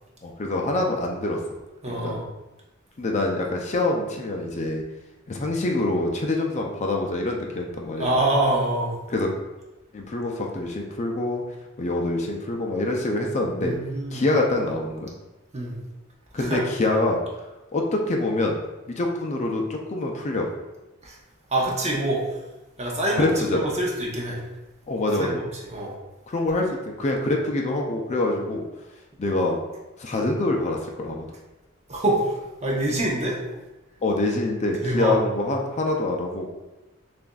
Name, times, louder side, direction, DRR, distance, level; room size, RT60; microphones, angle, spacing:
voice 1, 0.2-1.4 1.9-2.2 3.0-4.8 5.3-8.2 9.1-9.3 9.9-11.4 11.8-13.8 14.1-15.1 16.3-17.2 17.7-18.6 18.9-20.5 23.2-23.7 24.9-25.4 26.3-28.6 29.2-29.6 30.0-31.3 34.0-36.5, left 2 dB, 35° left, 1 dB, 0.5 m, -25 dB
voice 2, 1.8-2.2 8.0-9.0 13.6-14.2 15.5-15.8 16.4-16.6 21.0-21.2 21.5-22.2 22.8-24.4 25.2-25.4 25.7-25.9 31.9-32.4 32.6-33.4 34.8-35.2, right 1 dB, 35° right, -3 dB, 0.9 m, -25 dB
6.8 x 2.5 x 2.3 m, 1.0 s
head